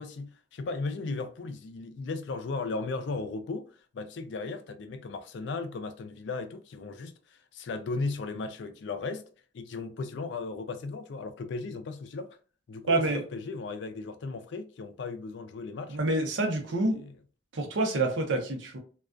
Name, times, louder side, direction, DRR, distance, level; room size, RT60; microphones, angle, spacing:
voice 1, 0.0-3.7 3.9-9.2 9.5-12.4 12.7-16.0 16.9-17.1, left 3 dB, 65° left, 0.4 m, -36 dB
voice 2, 12.9-13.2 15.9-17.0 17.5-18.8, right 2 dB, 80° right, 0.6 m, -27 dB
2.3 x 2.2 x 2.4 m
head